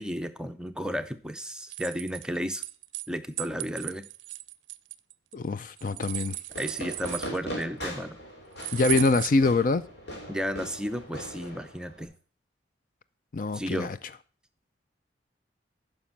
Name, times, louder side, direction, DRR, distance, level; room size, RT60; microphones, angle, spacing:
voice 1, 0.0-2.6 3.1-4.1 6.6-8.2 10.3-12.1 13.5-13.9, equal, 5° right, 0.6 m, -33 dB
sound 1, 1.7-3.1 3.4-5.3 5.8-7.6 8.6-9.3, right 18 dB, 85° right, 0.5 m, -35 dB
voice 2, 5.3-6.4 8.7-9.8 13.3-14.0, left 3 dB, 45° left, 0.4 m, -24 dB
Fireworks, 6.5-12.0, equal, 65° left, 3.5 m, -40 dB
9.6 x 6.2 x 7.2 m
head